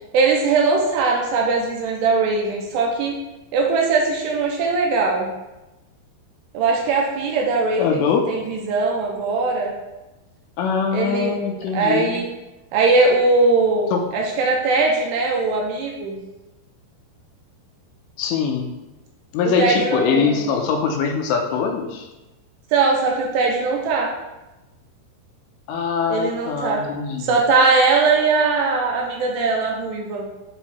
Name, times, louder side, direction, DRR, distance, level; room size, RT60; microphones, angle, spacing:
voice 1, 0.1-3.2 3.5-5.3 6.5-9.7 10.9-11.4 11.7-12.3 12.7-16.2 19.4-20.5 22.7-24.1 26.1-26.8 27.2-30.3, right 3 dB, 75° right, -1 dB, 2.7 m, -20 dB
voice 2, 7.8-8.3 10.6-12.2 13.9-14.0 18.2-18.7 19.3-22.1 25.7-27.3, left 6 dB, 85° left, 3 dB, 2.7 m, -22 dB
9.0 x 3.1 x 4.1 m, 1.0 s
omnidirectional pair, 5.2 m